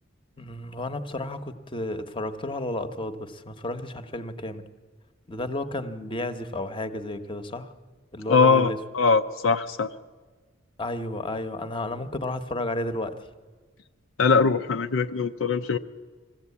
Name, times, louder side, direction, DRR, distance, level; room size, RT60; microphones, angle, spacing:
voice 1, 0.4-4.6 5.3-7.7 8.1-8.8 10.8-13.3, left 1 dB, 25° left, 9 dB, 1.0 m, -32 dB
voice 2, 8.3-9.9 14.2-15.8, left 4 dB, 75° left, 6 dB, 0.6 m, -21 dB
21.0 x 15.0 x 8.4 m, 1.4 s
head